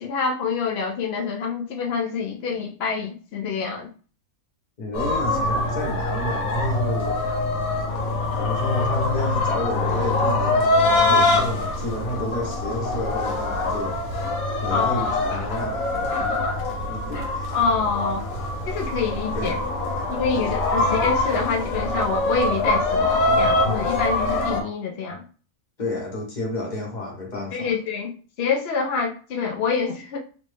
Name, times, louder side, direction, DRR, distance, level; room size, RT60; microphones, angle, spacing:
voice 1, 0.0-3.9 14.7-15.2 17.5-18.3 18.7-19.5 20.1-25.2 27.5-28.1 28.4-30.2, left 5 dB, 85° left, 1 dB, 0.5 m, -26 dB
voice 2, 4.8-7.3 8.4-14.0 14.6-16.5 16.9-17.6 19.3-19.6 19.9-20.1 20.4-20.9 25.8-27.7, left 2 dB, 30° left, -2 dB, 1.1 m, -31 dB
sound 1, 4.9-24.6, left 2 dB, 65° left, 1.3 m, -24 dB
3.3 x 2.5 x 3.3 m, 0.40 s
omnidirectional pair, 1.7 m